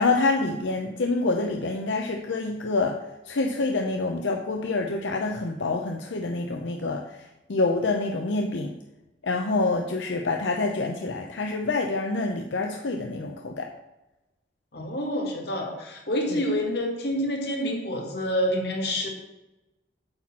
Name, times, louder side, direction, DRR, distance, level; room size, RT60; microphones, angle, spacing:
voice 1, 0.0-3.0 3.3-7.0 7.5-8.7 9.2-13.7 16.3-16.4, left 3 dB, 90° left, 3 dB, 0.7 m, -26 dB
voice 2, 14.7-19.1, equal, 65° left, 1 dB, 2.0 m, -27 dB
8.9 x 4.2 x 7.3 m, 1.0 s
head